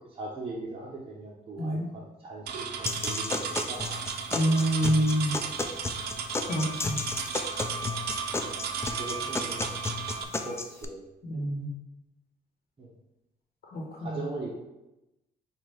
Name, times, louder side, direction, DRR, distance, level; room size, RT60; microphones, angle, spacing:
voice 1, 0.0-3.4 3.7-4.0 9.0-9.6 10.4-11.0 12.8-12.9 14.0-14.5, right 2 dB, 35° right, -4 dB, 0.9 m, -39 dB
voice 2, 1.6-1.9 4.3-5.4 6.4-7.0 11.2-11.7 13.7-14.2, right 1 dB, 70° left, -1 dB, 1.1 m, -27 dB
sound 1, 2.5-10.2, right 6 dB, 85° right, 0.5 m, -35 dB
sound 2, 2.9-10.8, left 3 dB, 15° left, 0.3 m, -33 dB
Wind instrument woodwind instrument, 6.5-10.6, right 4 dB, 55° left, 0.8 m, -40 dB
5.5 x 2.4 x 3.3 m, 0.94 s
cardioid pair, 115°, 16 cm